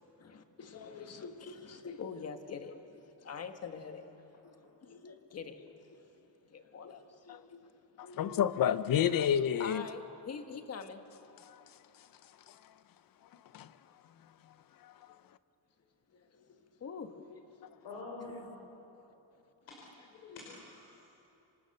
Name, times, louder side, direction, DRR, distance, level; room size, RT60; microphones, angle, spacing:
voice 1, 0.0-8.4 9.6-11.0 15.1-15.2 16.1-17.8 18.2-18.5 20.2-20.4, left 5 dB, 35° left, 7 dB, 1.5 m, -46 dB
voice 2, 8.2-9.8 11.4-11.6 12.5-12.6 13.5-13.7 14.8-14.9, left 9 dB, 50° left, 14 dB, 0.7 m, -29 dB
voice 3, 17.8-18.6 18.9-19.0 19.7-19.8 20.3-21.1, left 2 dB, 75° left, -2 dB, 4.5 m, -46 dB
27.0 x 25.5 x 6.7 m, 3.0 s
cardioid pair, 180°, 42 cm